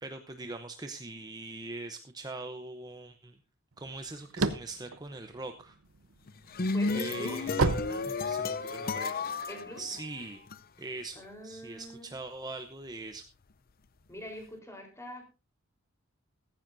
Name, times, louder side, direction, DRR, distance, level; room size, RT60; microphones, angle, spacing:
voice 1, 0.0-3.4 3.8-5.8 6.9-9.2 9.8-10.4 10.8-13.2, right 2 dB, 20° right, 6 dB, 0.7 m, -42 dB
sound 1, 3.9-6.1 6.5-8.8, right 3 dB, 85° right, 0.9 m, -30 dB
sound 2, 6.3-10.6, left 4 dB, 45° left, 0.6 m, -33 dB
voice 2, 6.7-7.4 9.5-9.8 11.2-12.1 14.1-15.2, equal, 15° left, 2 dB, 3.9 m, -43 dB
15.0 x 15.0 x 2.6 m, 0.29 s
head